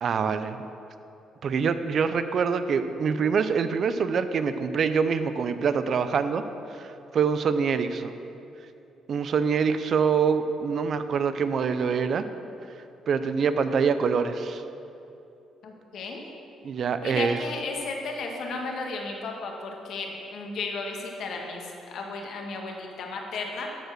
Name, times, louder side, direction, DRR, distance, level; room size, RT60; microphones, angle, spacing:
voice 1, 0.0-0.6 1.4-6.4 6.7-8.2 9.1-12.2 13.1-14.6 16.6-17.4, right 6 dB, 55° right, 11 dB, 0.5 m, -25 dB
voice 2, 15.6-16.2 17.0-23.7, left 3 dB, 70° left, 1 dB, 1.6 m, -34 dB
13.5 x 4.6 x 6.5 m, 2.8 s
cardioid pair, 90°, 0 cm